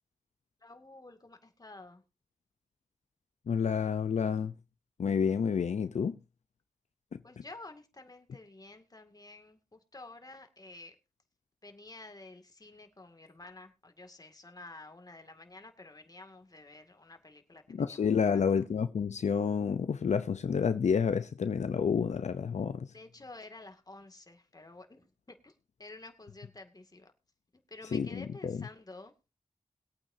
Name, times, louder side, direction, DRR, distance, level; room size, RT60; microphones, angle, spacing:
voice 1, 0.6-2.0 7.2-11.0 11.6-18.4 22.9-27.1 27.7-29.1, left 2 dB, 35° left, 2.2 m, -51 dB
voice 2, 3.5-4.5 5.0-6.2 7.1-7.2 17.7-22.9 27.9-28.6, left 6 dB, 80° left, 0.6 m, -29 dB
21.0 x 8.7 x 2.7 m
wide cardioid pair, 60°, 12 cm